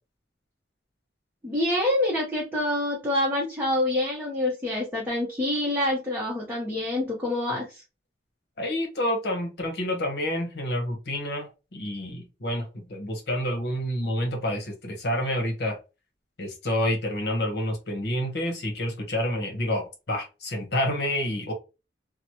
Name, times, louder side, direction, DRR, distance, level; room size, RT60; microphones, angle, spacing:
voice 1, 1.4-7.8, left 1 dB, 10° right, 0.7 m, -26 dB
voice 2, 8.6-15.8 16.4-21.5, left 1 dB, 60° left, 1.0 m, -28 dB
2.9 x 2.1 x 2.9 m
head